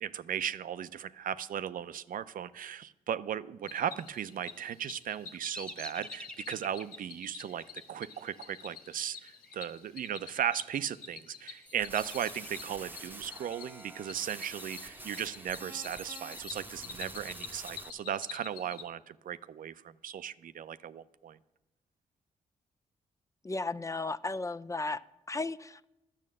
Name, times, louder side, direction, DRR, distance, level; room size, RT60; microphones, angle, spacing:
voice 1, 0.0-19.7 20.0-21.4, right 9 dB, 65° right, 0.5 m, -37 dB
Cricket, 3.6-18.8, left 6 dB, 90° left, 1.0 m, -49 dB
Bird vocalization bird call bird song, 4.7-9.7 10.0-10.6 11.1-13.1, equal, 5° left, 1.1 m, -49 dB
sound 1, 11.7-17.9, right 1 dB, 15° right, 0.9 m, -46 dB
voice 2, 23.4-25.8, left 3 dB, 20° left, 0.4 m, -35 dB
10.5 x 6.4 x 7.5 m
supercardioid pair, 55°, 15 cm